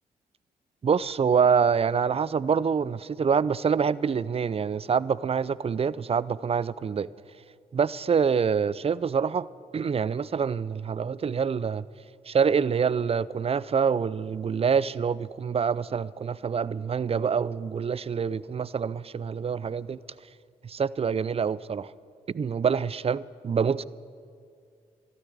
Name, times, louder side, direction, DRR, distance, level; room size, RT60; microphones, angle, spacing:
voice 1, 0.8-7.1 7.7-9.5 9.7-11.9 12.3-20.0 20.6-21.9 22.3-23.8, right 6 dB, 35° right, 20 dB, 0.5 m, -26 dB
13.0 x 12.5 x 8.0 m, 2.3 s
hypercardioid pair, 40°, 18 cm